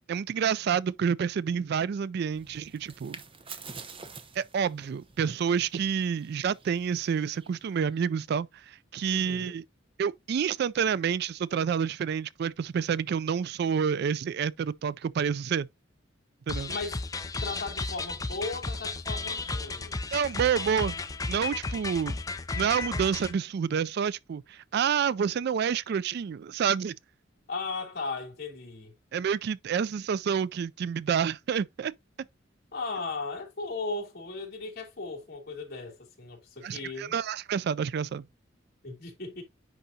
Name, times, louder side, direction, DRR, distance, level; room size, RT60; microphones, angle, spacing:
voice 1, 0.1-3.2 4.4-9.6 10.0-15.7 16.5-16.7 20.1-20.9 21.3-22.2 22.6-26.9 29.1-31.9 36.6-38.2, right 7 dB, 55° right, 0.3 m, -28 dB
sound 1, 2.3-8.0, right 5 dB, 30° right, 0.8 m, -48 dB
voice 2, 9.1-9.6 16.7-17.0 17.4-20.1 27.5-29.0 32.7-37.2 38.8-39.4, left 3 dB, 50° left, 2.9 m, -37 dB
sound 2, 16.5-23.3, left 3 dB, 20° left, 0.5 m, -34 dB
10.0 x 3.9 x 2.8 m
head